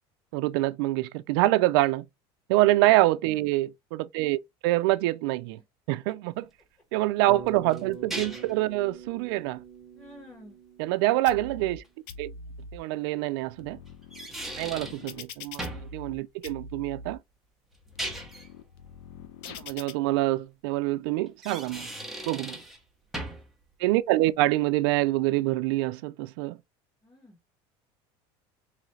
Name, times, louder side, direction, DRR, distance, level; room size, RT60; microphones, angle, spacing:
voice 1, 0.3-2.0 2.5-5.6 5.9-6.4 6.9-9.6 10.8-11.8 12.2-12.3 12.7-13.8 14.6-17.2 19.5-21.9 22.3-22.6 23.8-26.6, right 17 dB, 85° right, 0.4 m, -26 dB
voice 2, 2.5-2.9 5.6-5.7 9.9-10.6 21.7-21.8 22.1-22.6 27.0-27.4, equal, 20° left, 1.6 m, -52 dB
sound 1, 7.3-8.6 11.8-11.9 13.9-15.1 15.6-15.9 17.7-18.5 21.3-22.8 23.1-23.5, right 1 dB, ahead, 0.9 m, -37 dB
Bass guitar, 7.3-11.6, right 6 dB, 25° right, 1.1 m, -44 dB
sound 2, 11.3-11.8 12.1-12.8 13.4-16.2 16.4-17.2 17.7-19.9, left 4 dB, 85° left, 0.8 m, -44 dB
3.8 x 3.1 x 3.1 m
cardioid pair, 150°, 12 cm